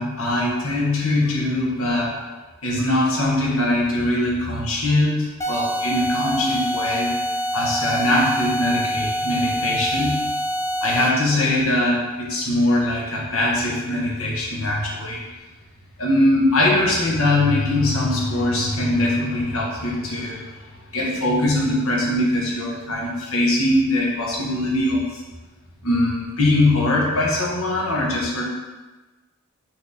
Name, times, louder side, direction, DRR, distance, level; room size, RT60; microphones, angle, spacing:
voice 1, 0.0-2.1 2.6-7.1 7.5-10.2 10.8-15.2 16.0-20.5 20.9-25.2 25.8-28.4, left 1 dB, 75° left, -3 dB, 0.9 m, -21 dB
sound 1, 5.4-11.3, equal, 15° left, 0.4 m, -26 dB
3.9 x 2.9 x 3.5 m, 1.2 s
head